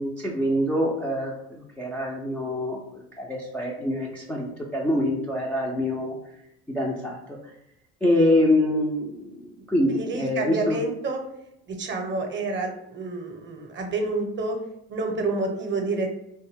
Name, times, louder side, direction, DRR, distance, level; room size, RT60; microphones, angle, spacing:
voice 1, 0.0-2.8 3.2-6.2 6.7-7.2 8.0-10.8, left 1 dB, 5° left, -3 dB, 0.3 m, -25 dB
voice 2, 9.9-11.2 11.7-14.6 14.9-16.2, right 3 dB, 30° right, 4 dB, 0.7 m, -28 dB
2.5 x 2.3 x 3.3 m, 0.82 s
hypercardioid pair, 70°, 35 cm